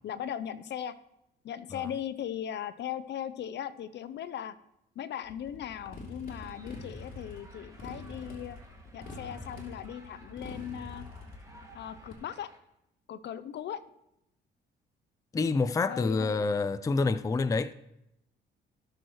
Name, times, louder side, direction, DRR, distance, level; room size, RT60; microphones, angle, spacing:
voice 1, 0.0-1.0 1.4-4.6 5.0-8.6 8.9-11.0 11.7-12.5 13.1-13.8 15.9-16.4, left 9 dB, 65° left, 0.6 m, -38 dB
Motorcycle, 5.2-12.2, left 2 dB, 45° left, 3.0 m, -45 dB
sound 1, 6.3-12.6, right 1 dB, 15° right, 2.1 m, -56 dB
voice 2, 15.3-17.7, left 4 dB, 15° left, 0.4 m, -27 dB
17.5 x 6.3 x 3.1 m
cardioid pair, 90°, 20 cm